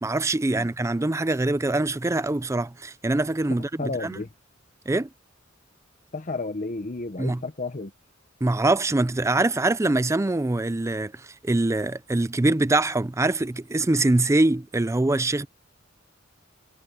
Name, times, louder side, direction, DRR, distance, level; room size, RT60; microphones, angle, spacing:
voice 1, 0.0-4.2 4.9-5.1 7.2-7.4 8.4-15.5, right 2 dB, 15° right, 0.4 m, -24 dB
voice 2, 3.8-4.3 6.1-7.9, left 3 dB, 40° left, 0.9 m, -32 dB
head